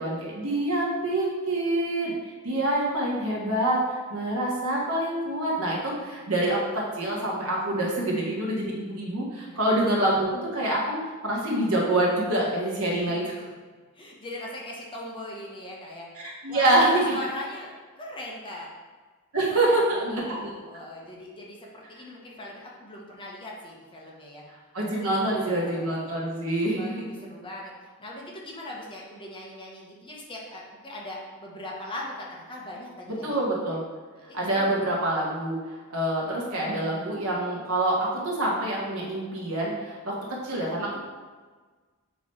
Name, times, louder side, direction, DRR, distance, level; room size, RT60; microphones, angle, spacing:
voice 1, 0.0-2.1 2.4-3.8 4.1-11.0 11.2-13.3 16.2-17.1 19.3-20.5 24.7-27.0 33.2-33.8 34.3-35.6 35.9-41.0, right 1 dB, 75° right, -4 dB, 1.5 m, -26 dB
voice 2, 13.9-18.7 19.5-24.4 25.1-26.2 26.8-33.4 34.2-34.4, left 1 dB, 25° left, -3 dB, 1.0 m, -40 dB
7.0 x 3.1 x 4.3 m, 1.4 s
head